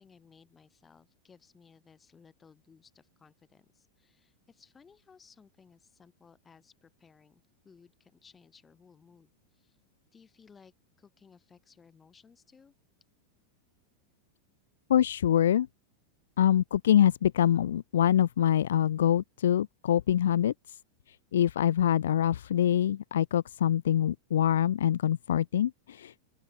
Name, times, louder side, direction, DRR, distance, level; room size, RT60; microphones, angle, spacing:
voice 1, 0.0-9.8 10.1-12.7, left 5 dB, 15° left, 6.7 m, -59 dB
voice 2, 14.9-15.7 16.4-20.5 21.3-26.1, left 10 dB, 60° left, 0.4 m, -25 dB
open air
figure-of-eight pair, 90°, 0 cm